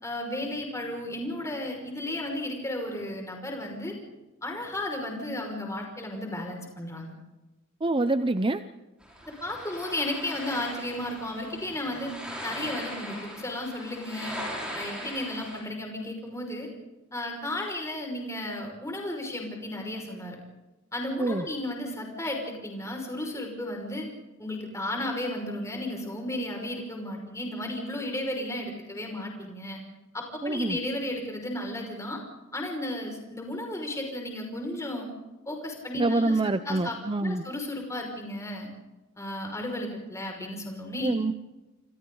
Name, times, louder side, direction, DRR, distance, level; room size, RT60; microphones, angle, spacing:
voice 1, 0.0-4.0 4.4-7.2 9.3-12.1 12.4-14.4 14.7-16.7 17.1-20.4 20.9-24.1 24.4-29.8 30.1-32.2 32.5-35.1 35.5-36.4 36.7-38.7 39.2-41.1, left 1 dB, 15° left, 1 dB, 5.5 m, -34 dB
voice 2, 7.8-8.6 21.2-21.4 30.4-30.8 36.0-37.4 41.0-41.3, right 2 dB, 25° right, 11 dB, 0.6 m, -26 dB
Waves at Forth, 9.0-15.6, equal, 5° right, 6.5 m, -39 dB
27.5 x 27.0 x 3.9 m, 1.1 s
head